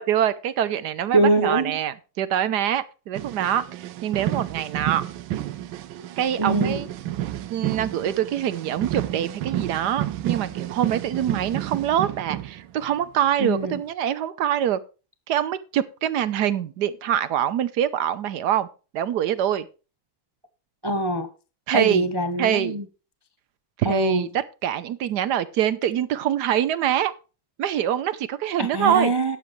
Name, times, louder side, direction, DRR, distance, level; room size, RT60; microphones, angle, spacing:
voice 1, 0.0-5.0 6.2-6.9 7.5-14.8 15.3-18.7 18.9-19.7 21.7-22.1 22.4-22.8 23.8-27.1 27.6-29.1, right 10 dB, 65° right, 1.2 m, -24 dB
voice 2, 1.1-1.7 6.4-6.8 13.4-13.8 20.8-21.3 21.7-22.9 23.8-24.3 28.6-29.4, right 2 dB, 40° right, 0.3 m, -23 dB
sound 1, 3.1-13.0 13.6-13.8, right 13 dB, 85° right, 1.5 m, -31 dB
12.5 x 9.4 x 3.2 m
omnidirectional pair, 2.1 m